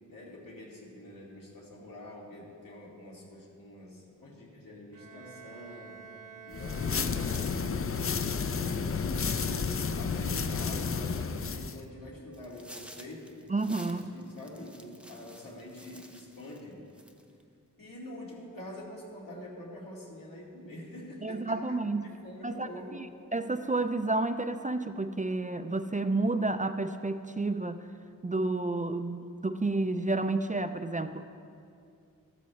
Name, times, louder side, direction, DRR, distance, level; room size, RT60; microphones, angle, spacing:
voice 1, 0.1-6.0 6.4-8.1 8.4-13.4 13.8-16.8 17.8-23.1, left 1 dB, 80° left, -4 dB, 2.4 m, -46 dB
Bowed string instrument, 4.9-8.1, right 6 dB, 70° right, 1.0 m, -50 dB
sound 1, 6.5-11.8, left 5 dB, 40° left, 0.5 m, -31 dB
sound 2, 12.3-16.7 17.0-17.4, equal, 5° right, 0.7 m, -52 dB
voice 2, 13.5-14.0 21.2-22.0 22.4-27.8 28.2-31.2, right 2 dB, 25° right, 9 dB, 0.4 m, -30 dB
14.5 x 12.5 x 3.1 m, 2.5 s
wide cardioid pair, 80°, 33 cm